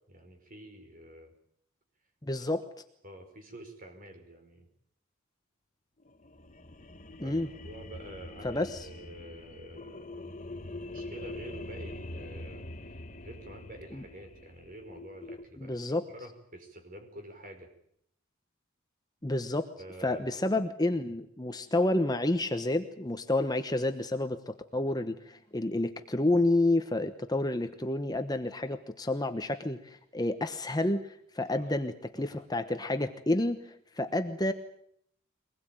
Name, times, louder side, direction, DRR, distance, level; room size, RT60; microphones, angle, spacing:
voice 1, 0.1-1.3 2.3-2.4 3.0-4.7 7.2-10.4 10.8-15.8 16.1-17.7 19.8-20.4 31.5-31.7 32.2-32.3, right 1 dB, 40° right, 6 dB, 5.2 m, -48 dB
voice 2, 2.2-2.6 7.2-7.5 8.4-8.9 13.9-14.0 15.6-16.1 19.2-19.7 20.0-33.7 34.0-34.5, left 2 dB, 20° left, 8 dB, 1.1 m, -29 dB
sound 1, 6.0-15.4, left 2 dB, 35° left, 1.3 m, -44 dB
24.0 x 20.0 x 9.0 m, 0.69 s
head